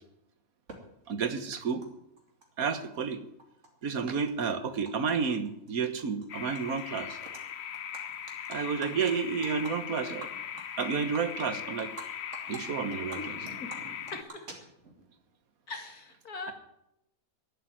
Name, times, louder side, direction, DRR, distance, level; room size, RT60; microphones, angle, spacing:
Animal, 0.7-0.8 1.8-1.9 2.2-3.1 3.4-5.1 5.5-5.7 6.0-6.8 7.1-7.4 7.7-12.1 12.3-12.6 12.9-15.0, right 2 dB, 50° right, 3.0 m, -46 dB
voice 1, 1.1-1.8 2.6-3.2 3.8-7.2 8.5-10.3 10.8-11.9 12.5-13.2, right 6 dB, 70° right, 11 dB, 1.7 m, -31 dB
sound 1, 6.3-14.2, left 9 dB, 55° left, 0.9 m, -40 dB
voice 2, 14.1-14.5 15.7-16.5, left 3 dB, 80° left, 5 dB, 2.9 m, -40 dB
12.0 x 11.0 x 9.2 m, 0.81 s
omnidirectional pair, 1.6 m